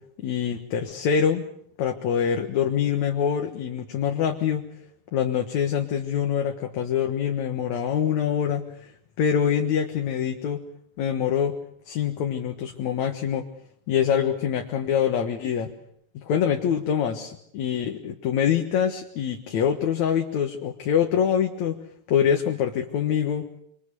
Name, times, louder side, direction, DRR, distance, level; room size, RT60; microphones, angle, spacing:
voice 1, 0.2-1.4 1.8-4.6 5.1-8.9 9.2-10.6 11.0-11.6 11.9-13.5 13.9-15.7 16.1-21.8 22.1-23.5, left 8 dB, 75° left, 4 dB, 2.8 m, -25 dB
27.0 x 26.5 x 6.9 m, 0.70 s
omnidirectional pair, 3.3 m